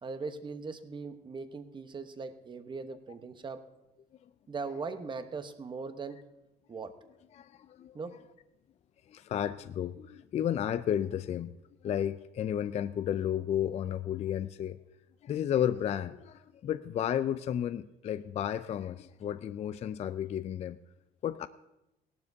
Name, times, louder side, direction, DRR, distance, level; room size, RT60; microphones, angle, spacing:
voice 1, 0.0-3.6 4.5-6.2 6.7-6.9 7.9-8.2, right 4 dB, 30° right, 9 dB, 1.0 m, -39 dB
voice 2, 7.3-8.0 9.1-11.5 11.8-14.8 15.2-20.8 21.2-21.5, left 10 dB, 40° left, 13 dB, 0.4 m, -32 dB
17.0 x 12.0 x 2.7 m, 0.92 s
cardioid pair, 110°, 17 cm